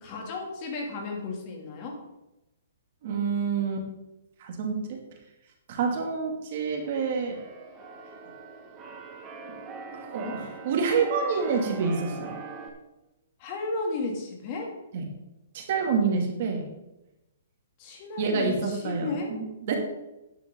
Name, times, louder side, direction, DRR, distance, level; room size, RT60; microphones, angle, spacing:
voice 1, 0.0-2.0 10.2-10.4 13.4-14.7 17.8-19.3, left 3 dB, 30° left, 0 dB, 2.8 m, -34 dB
voice 2, 3.0-3.9 4.4-5.0 5.7-7.4 9.9-12.3 14.9-15.1 15.5-16.7 18.2-19.7, right 5 dB, 45° right, 2 dB, 2.6 m, -28 dB
Keyboard (musical), 6.8-12.7, right 4 dB, 20° right, 1.9 m, -42 dB
11.5 x 10.0 x 3.9 m, 0.94 s
hypercardioid pair, 160°, 0 cm